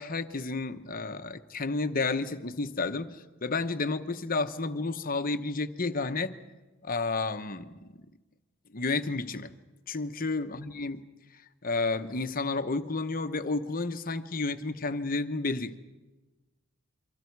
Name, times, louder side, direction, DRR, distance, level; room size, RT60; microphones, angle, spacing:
voice 1, 0.0-6.4 6.8-8.0 8.7-9.5 9.9-11.0 11.6-15.8, left 3 dB, 40° left, 0.9 m, -31 dB
29.5 x 24.0 x 4.7 m
head